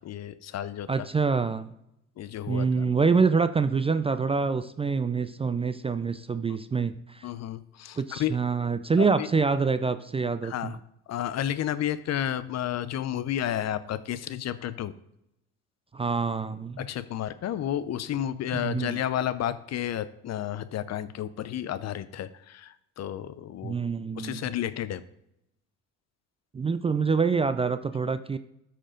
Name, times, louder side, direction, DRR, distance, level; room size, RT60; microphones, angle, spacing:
voice 1, 0.0-0.9 2.2-2.9 7.2-8.4 9.0-9.3 10.4-10.8 11.1-14.9 16.8-23.8 24.2-25.0, left 11 dB, 50° left, 15 dB, 0.6 m, -31 dB
voice 2, 0.9-1.7 2.5-7.3 8.0-10.8 15.9-16.8 18.5-19.0 23.6-24.4 26.5-28.4, right 5 dB, 15° right, 11 dB, 0.4 m, -26 dB
13.0 x 4.4 x 3.8 m, 0.81 s
hypercardioid pair, 65°, 35 cm